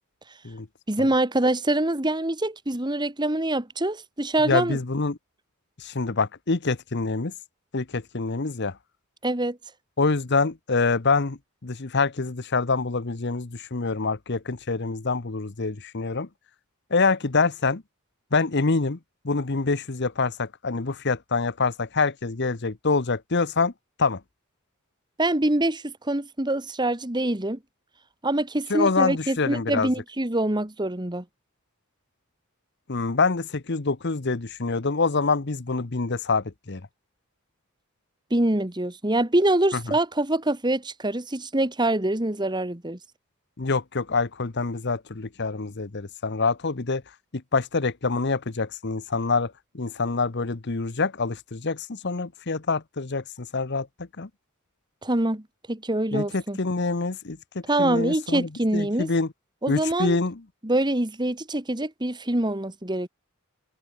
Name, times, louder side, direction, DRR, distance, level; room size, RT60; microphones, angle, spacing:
voice 1, 0.9-4.8 9.2-9.6 25.2-27.6 28.2-31.2 38.3-43.0 55.0-56.6 57.7-59.1 59.6-60.2 60.6-63.1, right 1 dB, 20° right, 1.6 m, -25 dB
voice 2, 4.4-5.2 5.8-7.3 7.7-8.8 10.0-16.3 16.9-17.8 18.3-19.0 19.2-23.7 24.0-24.2 28.7-29.9 32.9-36.8 43.6-47.0 47.3-54.3 56.1-59.3 59.7-60.4, left 4 dB, 50° left, 1.0 m, -26 dB
head